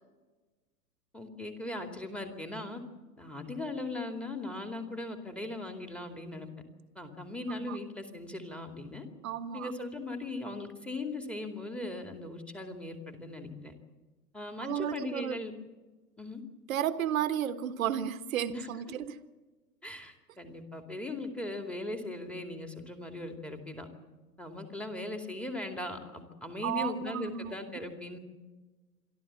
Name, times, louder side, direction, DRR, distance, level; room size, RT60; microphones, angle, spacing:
voice 1, 1.1-2.8 3.2-6.5 7.0-9.1 9.5-13.7 14.3-15.5 16.2-16.4 18.5-18.7 19.8-23.9 24.4-28.2, left 2 dB, ahead, 2.5 m, -39 dB
voice 2, 9.2-9.7 14.6-15.4 16.7-19.2 26.6-27.6, right 10 dB, 55° right, 1.5 m, -33 dB
26.5 x 12.5 x 8.8 m
figure-of-eight pair, 115°, 49 cm